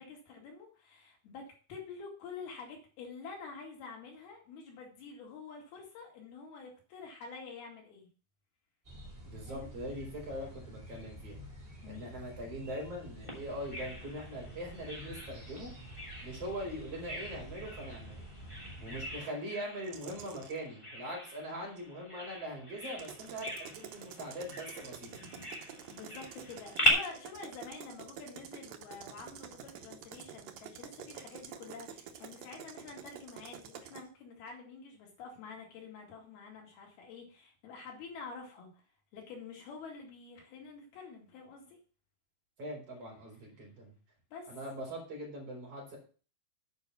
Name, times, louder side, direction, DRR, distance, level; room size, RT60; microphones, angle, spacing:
voice 1, 0.0-8.1 9.4-9.7 11.8-12.1 18.6-18.8 25.9-38.8 39.1-41.8 44.3-44.6, left 5 dB, 80° left, 0 dB, 4.5 m, -48 dB
sound 1, 8.8-19.2, right 1 dB, 15° right, 4.3 m, -49 dB
voice 2, 9.2-11.4 11.9-15.7 16.2-18.2 18.8-25.1 42.6-43.9 44.5-46.0, equal, 40° right, -2 dB, 4.7 m, -42 dB
Bird vocalization bird call bird song, 13.3-26.9, equal, 10° left, 2.3 m, -39 dB
sound 2, 19.8-20.6 22.9-34.1, right 8 dB, 75° right, 1.6 m, -48 dB
9.0 x 5.2 x 6.9 m, 0.38 s
omnidirectional pair, 4.3 m